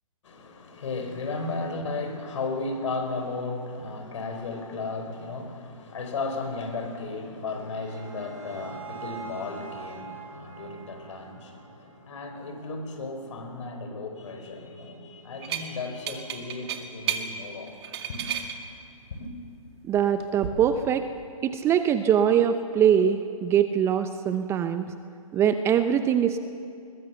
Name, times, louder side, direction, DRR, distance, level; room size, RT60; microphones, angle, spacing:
voice 1, 0.2-17.8 18.1-18.3 19.2-19.3, left 3 dB, 60° left, 5 dB, 4.7 m, -35 dB
sound 1, 7.4-12.5, right 4 dB, 70° right, 7.2 m, -44 dB
sound 2, 15.4-15.7 16.1-17.3 17.7-18.6 20.0-20.5, right 10 dB, 45° right, 2.2 m, -31 dB
voice 2, 19.9-21.1 21.4-24.9 25.3-26.4, right 9 dB, 15° right, 10 dB, 0.6 m, -22 dB
21.5 x 21.0 x 7.0 m, 2.4 s
hypercardioid pair, 135°, 18 cm